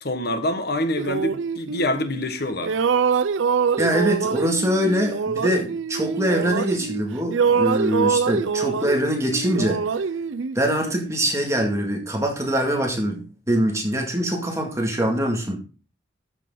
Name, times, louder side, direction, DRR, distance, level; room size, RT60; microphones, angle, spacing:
voice 1, 0.0-2.7, left 1 dB, 55° left, 1.4 m, -26 dB
sound 1, 1.0-2.3 2.6-7.0 7.3-11.1, right 5 dB, 85° right, 0.5 m, -24 dB
voice 2, 3.8-9.8 10.5-15.6, equal, 15° right, 2.1 m, -23 dB
13.5 x 6.8 x 3.8 m
head